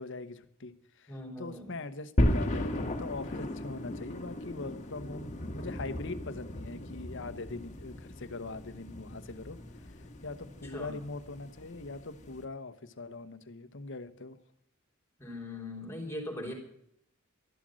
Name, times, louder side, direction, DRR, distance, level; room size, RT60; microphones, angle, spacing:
voice 1, 0.0-9.6 10.2-14.4, left 3 dB, 65° left, 12 dB, 1.1 m, -42 dB
voice 2, 1.1-1.7 10.6-10.9 15.2-16.5, left 1 dB, 15° left, 1 dB, 3.5 m, -40 dB
sound 1, 2.2-12.4, left 1 dB, 35° left, 1.7 m, -35 dB
13.0 x 11.5 x 6.3 m, 0.70 s
head